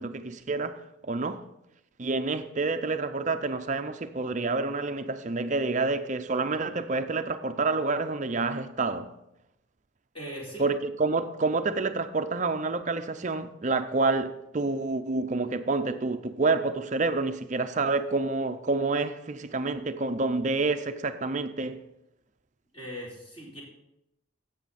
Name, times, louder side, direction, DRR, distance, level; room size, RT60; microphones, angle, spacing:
voice 1, 0.0-1.4 2.0-9.1 10.6-21.8, right 3 dB, 35° right, 0.5 m, -28 dB
voice 2, 10.1-10.6 22.7-23.6, equal, 25° left, 3.7 m, -39 dB
13.5 x 8.2 x 4.1 m
head